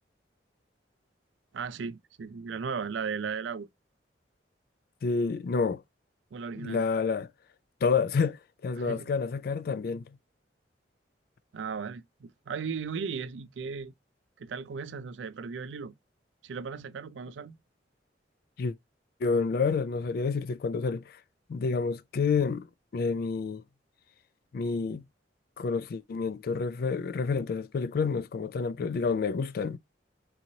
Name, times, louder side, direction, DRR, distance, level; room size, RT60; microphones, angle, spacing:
voice 1, 1.5-3.7 6.3-6.8 8.8-9.1 11.5-13.9 14.4-15.9 16.4-17.6, right 5 dB, 85° right, 0.4 m, -36 dB
voice 2, 5.0-5.8 6.6-7.3 7.8-10.0 18.6-18.7 19.2-21.2 21.5-23.6 24.5-25.0 25.6-29.8, left 5 dB, 55° left, 0.3 m, -29 dB
3.8 x 3.0 x 2.7 m
head